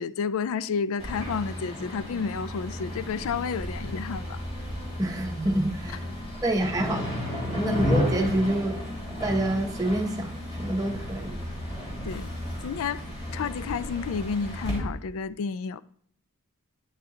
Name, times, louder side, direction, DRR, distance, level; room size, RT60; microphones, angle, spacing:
voice 1, 0.0-4.4 7.6-7.8 12.1-12.3 12.6-13.0 13.3-15.8, left 5 dB, 65° left, 0.3 m, -31 dB
sound 1, 1.0-14.8, left 1 dB, 30° left, 3.1 m, -33 dB
voice 2, 5.0-6.1 6.4-7.1 7.4-8.8 9.2-11.4, right 1 dB, 15° right, 0.9 m, -27 dB
9.2 x 6.6 x 2.8 m
head